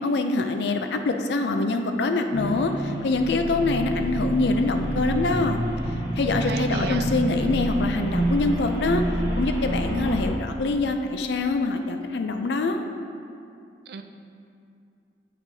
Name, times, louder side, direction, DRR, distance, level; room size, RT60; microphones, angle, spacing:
voice 1, 0.0-5.6 6.2-9.0 9.4-12.9, left 3 dB, 65° left, 6 dB, 0.4 m, -24 dB
sound 1, 2.3-10.3, right 1 dB, 35° right, 1.5 m, -28 dB
voice 2, 6.5-7.0 13.9-14.0, right 4 dB, 60° right, 7 dB, 0.4 m, -32 dB
8.5 x 6.1 x 2.7 m, 2.5 s
head